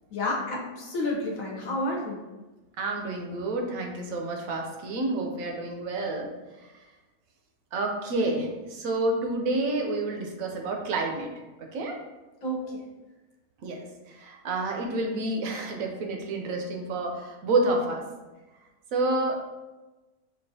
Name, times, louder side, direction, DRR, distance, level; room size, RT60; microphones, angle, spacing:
voice 1, 0.1-2.2 12.4-12.7, left 1 dB, 65° left, -2 dB, 1.2 m, -30 dB
voice 2, 2.8-6.3 6.6-6.7 7.7-11.3 11.6-12.0 13.6-18.1 18.9-19.3, right 2 dB, 70° right, 2 dB, 1.0 m, -29 dB
5.3 x 2.4 x 2.6 m, 1.1 s
omnidirectional pair, 1.6 m